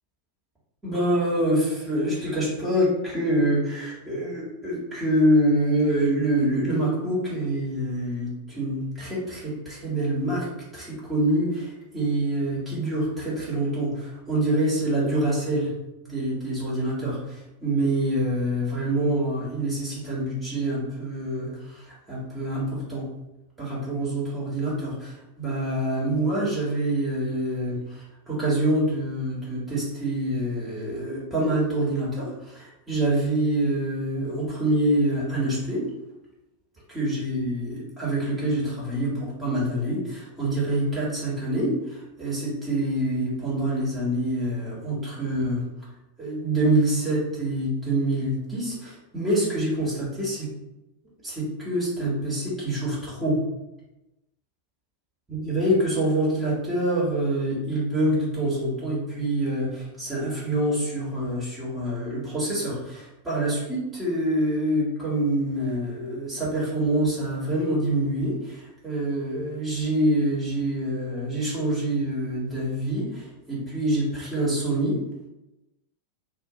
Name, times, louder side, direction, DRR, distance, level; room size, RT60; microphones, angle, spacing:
voice 1, 0.8-10.4 10.7-15.7 16.0-23.0 23.6-35.8 36.9-45.6 46.2-50.5 51.2-53.4 55.3-75.0, right 1 dB, 15° right, -8 dB, 1.3 m, -26 dB
2.6 x 2.5 x 3.7 m, 0.96 s
figure-of-eight pair, 90°, 0 cm